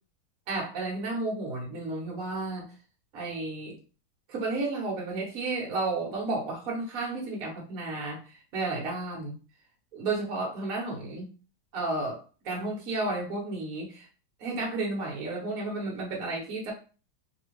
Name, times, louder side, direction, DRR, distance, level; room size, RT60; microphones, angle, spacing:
voice 1, 0.5-2.7 3.1-3.8 4.3-9.4 9.9-11.3 11.7-14.1 14.4-16.7, right 2 dB, 55° right, -2 dB, 1.5 m, -32 dB
3.4 x 2.4 x 3.0 m, 0.36 s
omnidirectional pair, 1.9 m